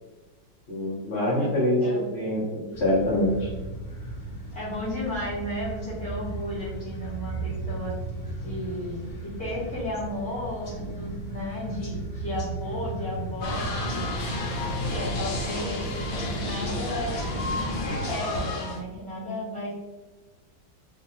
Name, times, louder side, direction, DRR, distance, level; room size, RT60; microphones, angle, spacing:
voice 1, 0.7-1.8 2.1-3.5, left 1 dB, 90° left, -7 dB, 0.5 m, -25 dB
sound 1, 2.7-18.2, right 2 dB, 35° left, 0.8 m, -35 dB
voice 2, 4.5-7.9 8.4-14.1 14.9-17.2 17.8-19.7, left 1 dB, 5° left, -9 dB, 0.6 m, -34 dB
sound 2, 13.4-18.8, left 2 dB, 70° left, 1.1 m, -31 dB
3.2 x 2.3 x 2.8 m, 1.2 s
omnidirectional pair, 2.1 m